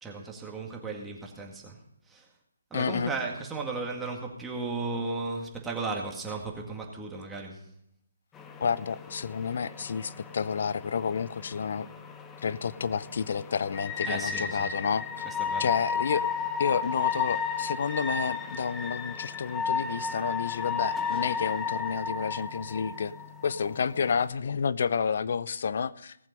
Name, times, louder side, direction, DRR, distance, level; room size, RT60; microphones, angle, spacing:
voice 1, 0.0-1.8 2.1-2.2 2.7-7.6 14.0-14.7 15.2-15.7, right 3 dB, 10° right, 0 dB, 2.0 m, -35 dB
voice 2, 2.7-3.1 8.6-11.9 12.4-15.3 15.6-16.3 16.6-23.1 23.4-26.2, left 6 dB, 55° left, 18 dB, 0.6 m, -30 dB
sound 1, 8.3-24.3, left 6 dB, 15° left, 0.9 m, -34 dB
18.5 x 7.5 x 5.3 m, 0.74 s
figure-of-eight pair, 145°, 0 cm